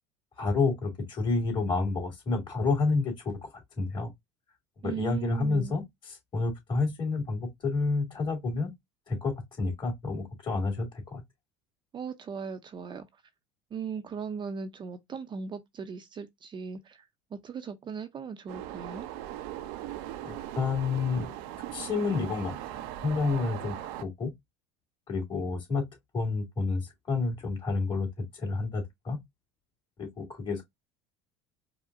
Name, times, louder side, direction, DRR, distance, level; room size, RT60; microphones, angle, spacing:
voice 1, 0.4-4.1 4.8-8.7 9.1-11.2 20.2-21.3 21.7-22.6 23.0-24.3 25.1-25.8 26.1-28.1 28.3-29.2 30.0-30.6, left 3 dB, 35° left, 2.3 m, -29 dB
voice 2, 4.8-5.8 11.9-13.1 13.7-17.0 17.3-19.1, right 6 dB, 35° right, 0.6 m, -38 dB
sound 1, 18.5-24.0, right 12 dB, 70° right, 0.6 m, -39 dB
4.8 x 2.1 x 2.5 m
supercardioid pair, 95°, 14 cm